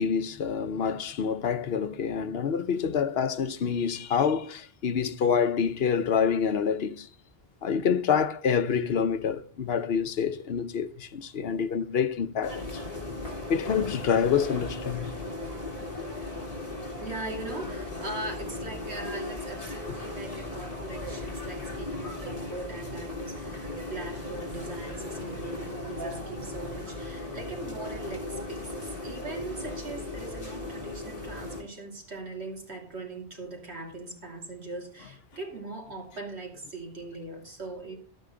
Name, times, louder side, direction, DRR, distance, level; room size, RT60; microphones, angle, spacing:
voice 1, 0.0-7.1 7.6-12.8 13.5-15.1, left 7 dB, 70° left, 1.0 m, -27 dB
sound 1, 12.4-31.6, left 2 dB, 35° left, 2.8 m, -37 dB
voice 2, 17.0-38.0, right 2 dB, 90° right, 3.1 m, -40 dB
12.0 x 9.2 x 3.7 m
omnidirectional pair, 1.1 m